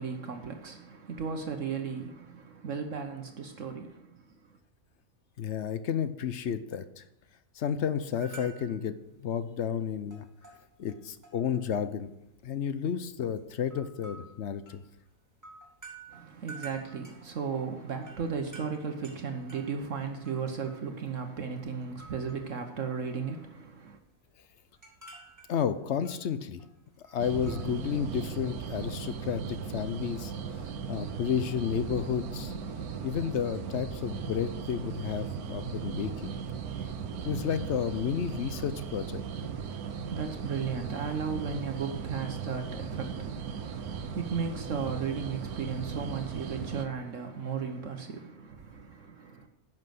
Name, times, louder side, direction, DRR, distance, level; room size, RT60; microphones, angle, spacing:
voice 1, 0.0-4.6 16.1-24.0 39.6-49.5, right 6 dB, 60° right, 1.3 m, -36 dB
voice 2, 5.4-7.0 7.6-9.0 9.2-10.2 10.8-12.1 12.4-14.8 25.5-26.6 27.1-30.3 30.9-32.5 33.0-36.3 37.2-39.2, left 8 dB, 60° left, 0.8 m, -31 dB
sound 1, 8.2-8.9 9.2-9.5 9.7-11.7 12.0-12.8 13.3-21.4 21.6-22.5 22.8-23.5 23.8-27.9, right 3 dB, 10° right, 2.8 m, -51 dB
sound 2, 27.2-46.9, right 6 dB, 80° right, 1.3 m, -37 dB
10.5 x 6.2 x 7.6 m
omnidirectional pair, 1.6 m